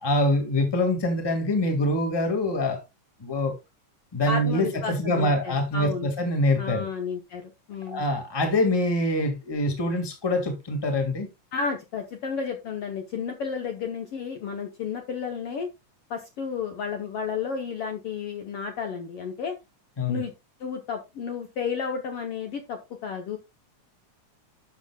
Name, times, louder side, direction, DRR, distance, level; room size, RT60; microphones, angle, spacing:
voice 1, 0.0-2.8 3.2-3.5 4.1-6.9 7.9-11.3 20.0-20.2, left 1 dB, 10° left, 1.3 m, -25 dB
voice 2, 4.3-6.1 6.6-7.4 7.7-8.0 11.5-15.7 16.1-19.6 20.1-20.3 20.6-23.4, left 6 dB, 60° left, 1.7 m, -32 dB
12.0 x 7.1 x 2.3 m
omnidirectional pair, 3.6 m